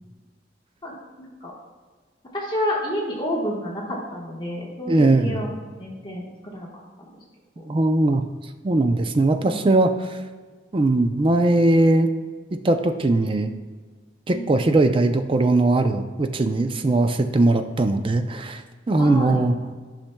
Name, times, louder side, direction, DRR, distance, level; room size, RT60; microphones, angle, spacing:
voice 1, 0.8-1.5 2.3-6.7 7.1-7.2 7.6-7.7 9.4-9.6 14.3-14.6 19.0-19.4, equal, 25° left, -3 dB, 1.2 m, -30 dB
voice 2, 4.9-5.4 7.7-8.2 8.6-9.9 10.7-12.1 12.5-13.5 14.3-18.6 18.9-19.5, right 2 dB, 30° right, 7 dB, 0.4 m, -20 dB
11.5 x 5.8 x 2.2 m, 1.5 s
head